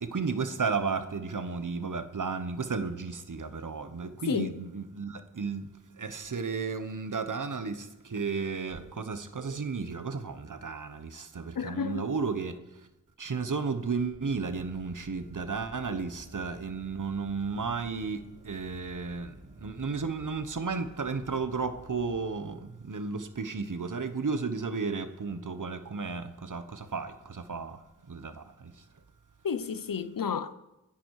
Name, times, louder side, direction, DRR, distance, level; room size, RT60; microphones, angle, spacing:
voice 1, 0.0-12.9 13.2-28.8, right 4 dB, 70° right, 1.2 m, -33 dB
voice 2, 11.6-12.1 15.9-16.1 29.4-30.5, left 6 dB, 90° left, 0.8 m, -32 dB
sound 1, 13.7-22.2, right 2 dB, 45° right, 2.8 m, -52 dB
21.5 x 10.0 x 4.9 m
wide cardioid pair, 80°, 33 cm